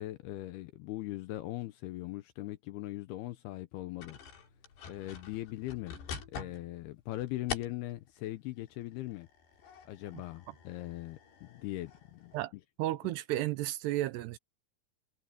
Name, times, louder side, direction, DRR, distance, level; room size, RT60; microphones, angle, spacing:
voice 1, 0.0-4.2 4.9-5.9 6.3-9.3 9.9-12.3, left 16 dB, 80° left, 2.4 m, -40 dB
sound 1, 4.0-8.2 8.7-12.5, left 6 dB, 65° left, 5.7 m, -46 dB
voice 2, 12.8-14.4, right 15 dB, 80° right, 2.6 m, -33 dB
omnidirectional pair, 5.2 m